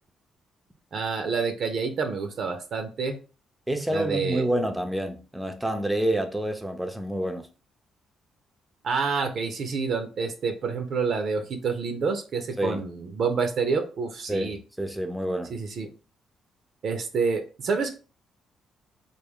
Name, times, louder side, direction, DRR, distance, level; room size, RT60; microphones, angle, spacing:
voice 1, 0.9-3.2 3.9-4.5 8.8-14.6 15.5-15.9 16.8-17.9, right 5 dB, 60° right, 0.6 m, -28 dB
voice 2, 3.7-7.5 12.6-12.8 14.3-15.5, right 1 dB, 5° right, 0.6 m, -28 dB
3.4 x 2.2 x 3.6 m
cardioid pair, 90°, 0 cm